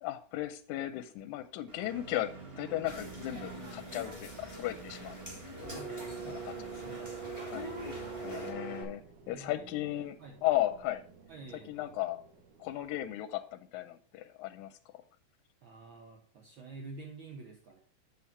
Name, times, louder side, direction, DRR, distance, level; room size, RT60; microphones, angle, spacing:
voice 1, 0.0-5.2 6.3-7.0 7.4-7.7 8.2-11.0 11.7-12.2 12.6-14.8, left 14 dB, 80° left, 10 dB, 1.9 m, -36 dB
Engine, 1.7-8.8, right 4 dB, 25° right, 1.3 m, -44 dB
sound 1, 1.9-13.0, right 7 dB, 65° right, 1.6 m, -53 dB
sound 2, 2.8-8.5, left 1 dB, 5° right, 2.3 m, -46 dB
voice 2, 5.7-7.1 9.3-9.7 10.2-10.4 11.3-12.0 15.6-17.8, right 3 dB, 80° right, 2 dB, 1.1 m, -49 dB
7.4 x 7.3 x 4.3 m, 0.44 s
omnidirectional pair, 3.6 m